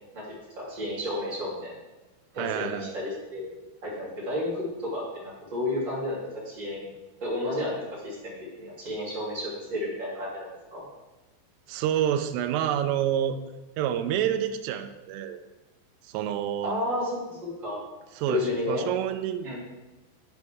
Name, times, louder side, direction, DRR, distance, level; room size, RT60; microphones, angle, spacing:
voice 1, 0.6-1.7 2.3-3.5 3.8-6.9 7.2-10.8 16.6-17.8 18.3-18.9 19.4-19.6, left 1 dB, 30° right, -7 dB, 2.5 m, -32 dB
voice 2, 2.4-2.9 11.7-13.4 13.8-15.4 16.0-16.8 18.2-19.6, right 10 dB, 85° right, 8 dB, 3.1 m, -28 dB
10.5 x 6.1 x 3.5 m, 1.1 s
omnidirectional pair, 5.6 m